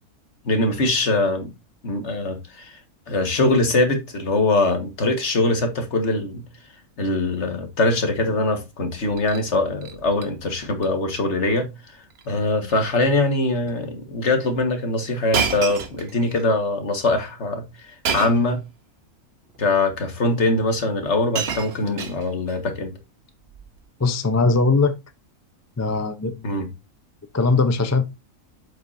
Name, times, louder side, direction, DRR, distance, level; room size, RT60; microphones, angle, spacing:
voice 1, 0.5-1.5 1.8-2.8 3.1-6.5 7.0-11.7 12.3-17.7 18.1-18.6 19.6-22.9 26.4-26.7, left 2 dB, 50° left, 1.8 m, -22 dB
Shatter, 9.0-9.5 9.8-10.3 10.6-10.9 11.1-11.2 12.1-12.3 12.7-12.9 13.7-13.8 15.3-16.4 18.0-18.5 19.5-19.6 20.7-20.8 21.0-22.6 23.5-23.8, right 6 dB, 50° right, 1.1 m, -29 dB
voice 2, 24.0-24.9 25.8-26.7 27.3-28.1, left 3 dB, 25° left, 0.3 m, -20 dB
7.7 x 7.3 x 2.6 m
omnidirectional pair, 1.6 m